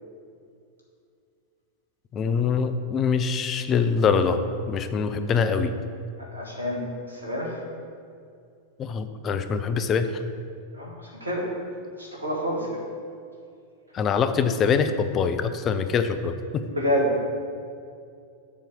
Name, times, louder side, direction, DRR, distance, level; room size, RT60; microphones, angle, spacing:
voice 1, 2.1-4.4 4.7-5.7 8.8-10.1 13.9-16.6, left 6 dB, 30° left, 10 dB, 0.4 m, -24 dB
voice 2, 6.2-7.6 10.7-11.5 12.0-12.9 16.7-17.2, equal, 80° right, -2 dB, 1.8 m, -28 dB
7.0 x 4.5 x 6.7 m, 2.4 s
figure-of-eight pair, 90°, 0 cm